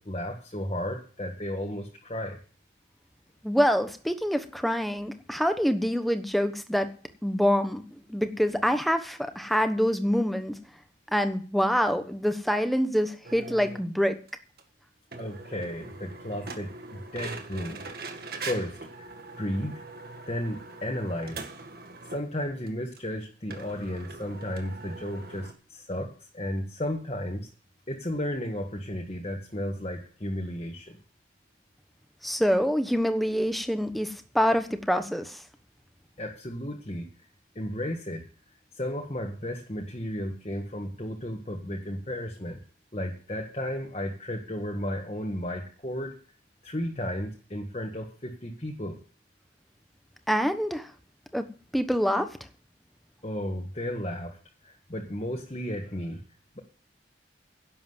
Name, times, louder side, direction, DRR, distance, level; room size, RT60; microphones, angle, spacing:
voice 1, 0.0-2.4 15.2-17.8 18.4-19.1 19.4-19.8 20.3-21.4 22.1-27.5 27.9-31.0 36.2-37.1 37.5-38.2 38.7-42.6 42.9-46.1 46.6-49.0 53.2-56.2, left 1 dB, 35° left, 1 dB, 1.6 m, -34 dB
voice 2, 3.4-6.9 7.2-7.8 8.1-10.6 11.1-14.2 32.2-35.4 50.3-50.9 51.3-51.4 51.7-52.4, equal, ahead, 8 dB, 1.1 m, -26 dB
sound 1, 13.2-13.8 14.3-14.4 14.6-14.7 15.1-22.3 22.7-22.8 23.0-23.1 23.5-25.5, right 3 dB, 55° right, 2.0 m, -42 dB
11.0 x 7.7 x 7.9 m, 0.40 s
head